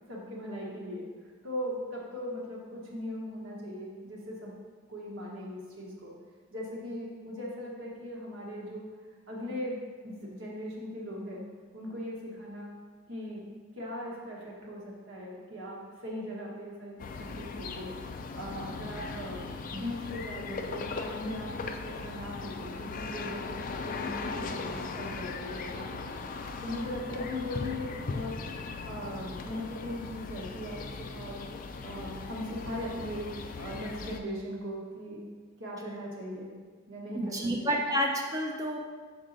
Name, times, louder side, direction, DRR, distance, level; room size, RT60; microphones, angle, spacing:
voice 1, 0.1-1.0 1.4-4.5 4.9-6.1 6.5-8.8 9.3-9.8 10.0-11.4 11.7-12.7 13.1-13.5 13.8-17.9 18.3-19.4 19.7-26.0 26.6-28.3 28.9-30.8 31.1-31.4 31.8-33.3 33.6-35.2 35.6-36.5 36.9-37.8, left 1 dB, 70° right, -3 dB, 1.3 m, -39 dB
sound 1, 17.0-34.2, left 4 dB, 40° left, 0.3 m, -39 dB
voice 2, 37.1-38.8, equal, 15° right, 1 dB, 0.5 m, -29 dB
6.4 x 4.6 x 3.9 m, 1.5 s
head